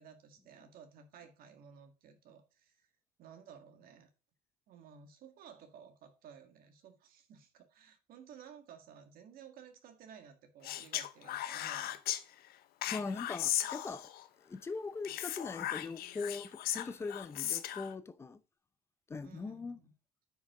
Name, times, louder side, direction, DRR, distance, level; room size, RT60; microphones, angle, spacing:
voice 1, 0.0-2.9 3.2-4.1 4.7-12.0 19.2-19.9, right 7 dB, 65° right, 2.0 m, -55 dB
Speech, 10.6-12.2 12.8-14.2 15.0-17.9, left 13 dB, 70° left, 0.9 m, -37 dB
voice 2, 12.9-14.0 14.5-18.4 19.1-19.8, left 4 dB, 15° left, 0.6 m, -41 dB
9.5 x 6.2 x 3.7 m
cardioid pair, 175°, 16 cm